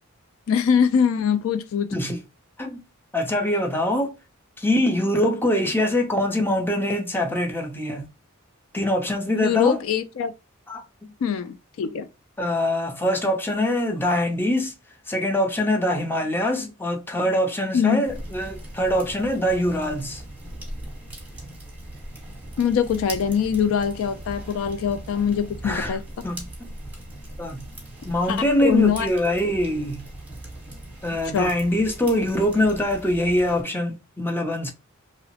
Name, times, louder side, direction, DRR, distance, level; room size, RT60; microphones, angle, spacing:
voice 1, 0.5-1.9 9.3-10.3 11.2-12.1 17.7-18.1 22.6-26.0 28.3-29.1 31.3-31.5, left 7 dB, 65° left, 0.3 m, -22 dB
voice 2, 3.1-4.1 4.6-8.1 8.7-9.8 10.7-11.1 11.8-11.9 12.4-14.7 15.1-20.2 25.6-26.0 26.2-26.7 27.4-27.6 28.0-30.0 31.0-34.7, left 1 dB, 10° left, 0.5 m, -24 dB
sound 1, 18.0-33.6, right 1 dB, 5° right, 1.0 m, -39 dB
2.8 x 2.0 x 2.7 m
head